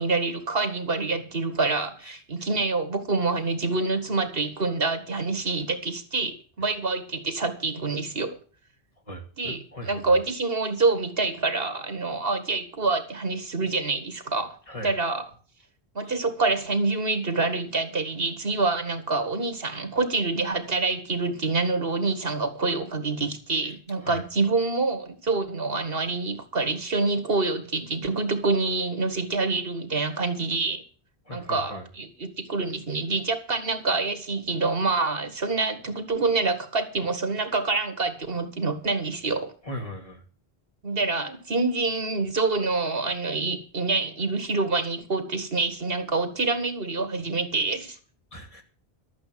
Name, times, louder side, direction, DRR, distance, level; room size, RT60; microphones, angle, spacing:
voice 1, 0.0-8.4 9.4-14.6 14.8-15.3 16.0-30.8 31.3-39.5 40.8-48.0, right 3 dB, 70° right, 2.0 m, -26 dB
voice 2, 9.1-10.2 14.7-14.9 16.0-16.1 23.6-24.2 31.3-31.9 39.6-40.2 48.3-48.6, left 1 dB, 35° left, 2.6 m, -39 dB
12.5 x 8.6 x 7.5 m
omnidirectional pair, 1.0 m